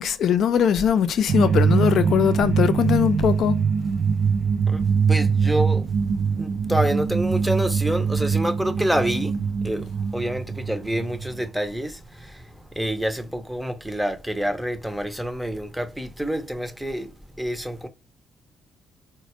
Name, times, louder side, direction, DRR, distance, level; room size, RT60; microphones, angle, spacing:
voice 1, 0.0-3.6, left 8 dB, 70° left, 0.4 m, -21 dB
sound 1, 1.3-11.5, right 6 dB, 60° right, 0.3 m, -23 dB
voice 2, 5.1-5.8 6.4-9.3 9.6-12.4 12.7-17.1 17.4-17.9, equal, 5° right, 0.6 m, -27 dB
4.0 x 2.2 x 2.9 m
cardioid pair, 90°, 0 cm